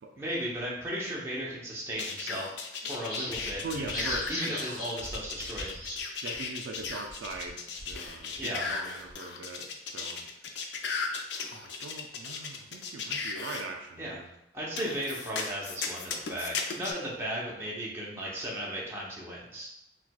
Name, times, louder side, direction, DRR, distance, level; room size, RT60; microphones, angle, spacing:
voice 1, 0.2-5.8 8.4-8.7 14.0-14.2 14.5-19.8, equal, 15° right, -5 dB, 0.7 m, -36 dB
sound 1, 2.0-13.6 14.8-16.9, left 5 dB, 65° left, 0.4 m, -36 dB
sound 2, 2.9-6.0 6.3-6.4 6.8-9.1, left 1 dB, 45° left, 0.8 m, -40 dB
voice 2, 3.6-4.7 6.2-10.3 11.5-14.3, right 3 dB, 75° right, 3 dB, 0.3 m, -41 dB
4.4 x 2.2 x 2.3 m, 0.86 s
head